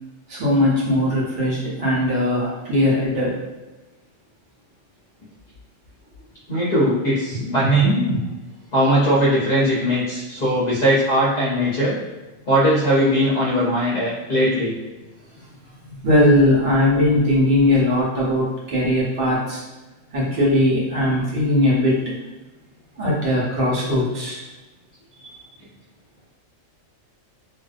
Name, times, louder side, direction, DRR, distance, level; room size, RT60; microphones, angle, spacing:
voice 1, 0.3-3.4 15.3-15.5 15.9-19.6 20.1-22.0 23.0-24.5 25.2-25.3, left 1 dB, 55° right, -5 dB, 0.9 m, -19 dB
voice 2, 6.5-8.2 8.7-12.0 12.5-14.8, equal, 50° left, -8 dB, 0.6 m, -19 dB
2.5 x 2.1 x 2.4 m, 1.1 s
omnidirectional pair, 1.3 m